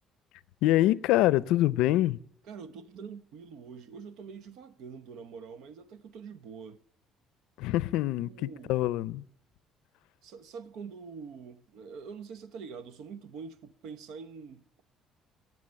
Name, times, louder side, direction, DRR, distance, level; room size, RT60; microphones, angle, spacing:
voice 1, 0.6-2.2 7.6-9.2, left 15 dB, 90° left, 0.5 m, -25 dB
voice 2, 2.4-6.8 8.2-8.7 10.2-14.8, right 5 dB, 70° right, 0.9 m, -45 dB
17.5 x 7.4 x 7.5 m
cardioid pair, 150°, 0 cm